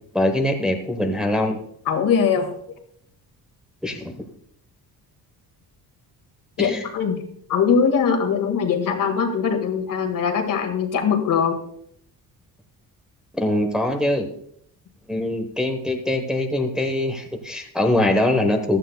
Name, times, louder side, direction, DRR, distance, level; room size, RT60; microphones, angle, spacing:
voice 1, 0.1-1.6 3.8-4.3 6.6-6.8 13.4-14.3 15.1-18.8, left 1 dB, ahead, 3 dB, 0.9 m, -23 dB
voice 2, 1.9-2.5 6.6-7.2 7.5-11.6, left 6 dB, 60° left, 6 dB, 1.8 m, -21 dB
15.5 x 11.5 x 2.2 m, 0.67 s
cardioid pair, 140°, 38 cm